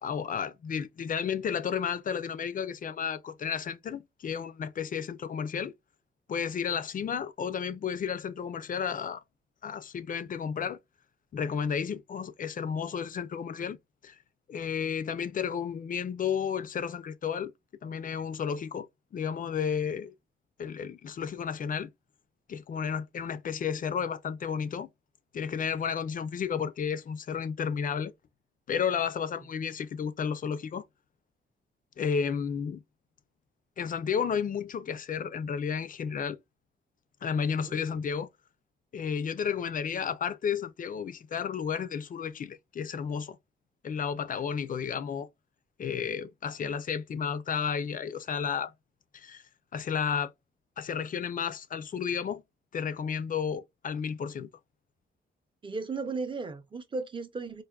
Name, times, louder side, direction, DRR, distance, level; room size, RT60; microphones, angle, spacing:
voice 1, 0.0-5.7 6.3-9.2 9.6-10.8 11.3-13.8 14.0-14.2 14.5-17.5 17.8-18.9 19.1-20.1 20.6-21.9 22.5-24.9 25.3-28.1 28.7-30.9 32.0-32.8 33.8-36.4 37.2-38.3 38.9-43.4 43.8-45.3 45.8-48.7 49.1-49.4 49.7-50.3 50.8-52.4 52.7-54.5, left 7 dB, 40° left, 0.4 m, -32 dB
voice 2, 55.6-57.6, right 4 dB, 25° right, 0.6 m, -35 dB
4.7 x 2.5 x 2.3 m
wide cardioid pair, 170°, 21 cm